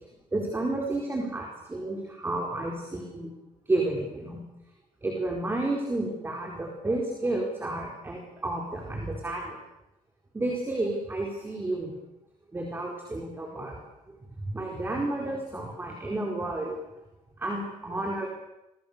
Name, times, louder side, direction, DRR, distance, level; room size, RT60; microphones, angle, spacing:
voice 1, 0.3-3.3 3.7-4.4 5.0-9.6 10.3-11.9 12.5-13.8 14.5-16.7 17.4-18.3, right 2 dB, 15° right, 0 dB, 4.7 m, -31 dB
30.0 x 24.5 x 7.0 m, 0.88 s
cardioid pair, 150°, 14 cm